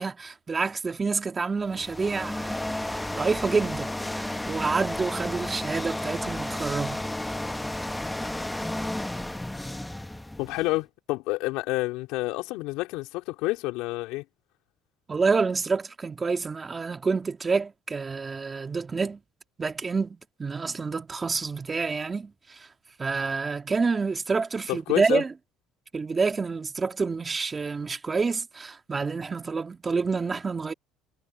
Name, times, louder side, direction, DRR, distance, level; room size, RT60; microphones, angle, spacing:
voice 1, 0.0-7.0 15.1-19.2 19.6-22.7 23.0-25.3 25.9-30.7, right 4 dB, 25° right, 2.6 m, -28 dB
sound 1, 1.6-10.8, left 1 dB, 5° left, 1.2 m, -32 dB
voice 2, 10.4-14.2 24.7-25.2, left 20 dB, 80° left, 3.8 m, -29 dB
supercardioid pair, 100°, 0 cm